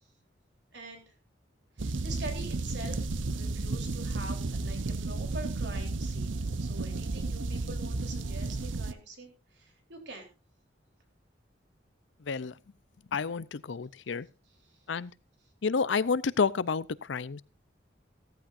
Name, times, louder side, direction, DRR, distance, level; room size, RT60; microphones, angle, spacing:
voice 1, 0.7-1.1 1.8-3.1 3.3-10.3 14.6-14.8, right 2 dB, 65° right, 3.5 m, -45 dB
sound 1, 1.8-8.9, right 3 dB, 90° right, 0.8 m, -33 dB
voice 2, 13.1-14.3 14.9-15.1 15.6-17.4, left 5 dB, 75° left, 0.5 m, -29 dB
15.5 x 14.0 x 2.6 m
head